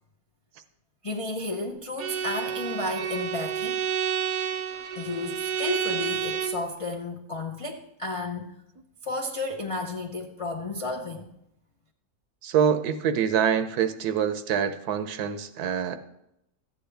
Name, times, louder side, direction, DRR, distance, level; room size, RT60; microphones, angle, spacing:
voice 1, 1.0-3.8 5.0-8.6 9.0-11.2, left 2 dB, 55° left, 3 dB, 0.3 m, -32 dB
Bowed string instrument, 2.0-6.7, right 8 dB, 55° right, 0.9 m, -30 dB
voice 2, 12.4-16.0, right 8 dB, 75° right, 10 dB, 1.2 m, -25 dB
14.0 x 8.8 x 3.4 m, 0.83 s
omnidirectional pair, 1.7 m